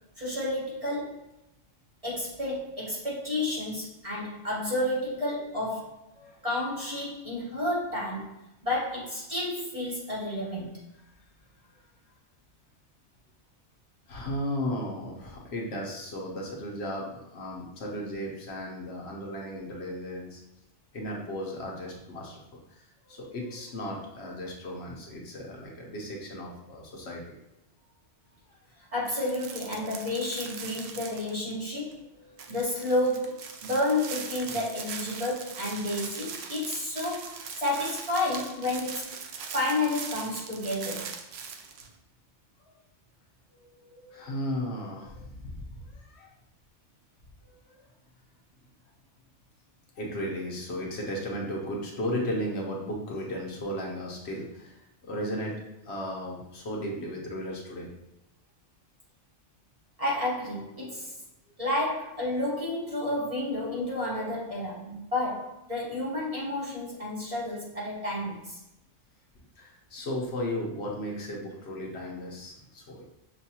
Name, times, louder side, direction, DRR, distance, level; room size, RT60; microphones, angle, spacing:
voice 1, 0.2-1.2 2.0-6.0 6.4-8.3 8.6-10.8 28.9-32.0 32.5-39.2 39.5-41.1 60.0-61.1 61.6-68.6, left 1 dB, 30° right, -6 dB, 1.0 m, -31 dB
voice 2, 14.1-20.4 20.9-22.4 23.0-27.2 29.8-30.0 32.1-32.5 42.6-42.7 43.5-46.3 47.4-47.8 50.0-54.7 55.0-55.5 55.8-57.9 69.6-73.0, equal, 65° left, -1 dB, 1.0 m, -35 dB
sound 1, 29.1-31.6 31.9-32.0 32.4-41.9, right 6 dB, 65° right, 0.7 m, -40 dB
6.4 x 2.2 x 2.8 m, 0.92 s
omnidirectional pair, 1.3 m